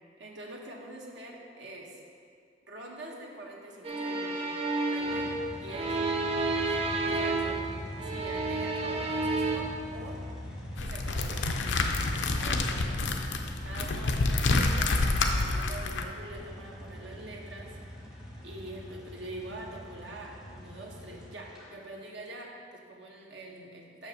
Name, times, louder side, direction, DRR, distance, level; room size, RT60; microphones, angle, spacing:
voice 1, 0.2-2.0 2.7-5.3 5.6-6.0 6.6-6.7 7.1-10.2 10.7-11.6 11.9-13.0 13.6-17.8 18.4-24.1, right 1 dB, 85° right, -1 dB, 1.2 m, -45 dB
sound 1, 3.8-7.7 8.0-9.6, right 3 dB, 30° right, 0.7 m, -30 dB
sound 2, 5.0-21.7, left 1 dB, 5° right, 1.1 m, -43 dB
sound 3, 10.8-16.0, left 3 dB, 85° left, 0.6 m, -28 dB
6.7 x 5.6 x 6.0 m, 2.2 s
head